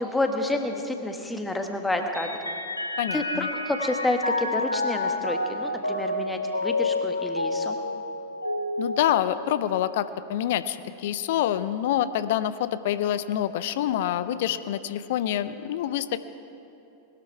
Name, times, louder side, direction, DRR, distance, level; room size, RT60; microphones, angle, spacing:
voice 1, 0.0-2.3 3.1-7.7, left 2 dB, 5° left, 4 dB, 1.4 m, -29 dB
Mallet percussion, 2.1-9.9, left 2 dB, 85° left, 0.9 m, -29 dB
voice 2, 3.0-3.5 8.8-16.2, left 11 dB, 55° left, 14 dB, 0.5 m, -26 dB
20.0 x 12.5 x 4.7 m, 2.9 s
figure-of-eight pair, 90°, 0 cm